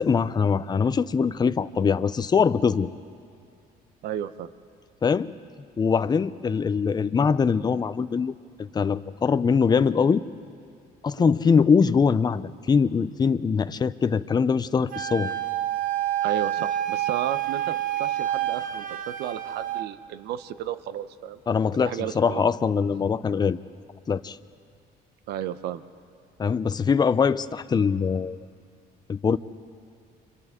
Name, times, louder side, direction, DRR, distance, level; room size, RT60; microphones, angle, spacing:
voice 1, 0.0-2.9 5.0-5.3 5.8-8.3 8.6-10.2 11.0-15.3 21.5-23.6 24.1-24.4 26.4-28.4 29.1-29.4, left 6 dB, 25° left, 13 dB, 0.6 m, -22 dB
voice 2, 4.0-4.5 11.2-11.3 16.2-21.4 21.7-22.4 25.3-25.8, right 10 dB, 75° right, 13 dB, 0.9 m, -33 dB
Wind instrument woodwind instrument, 14.9-19.9, right 12 dB, 55° right, 1.0 m, -28 dB
30.0 x 26.0 x 3.7 m, 2.4 s
cardioid pair, 110°, 17 cm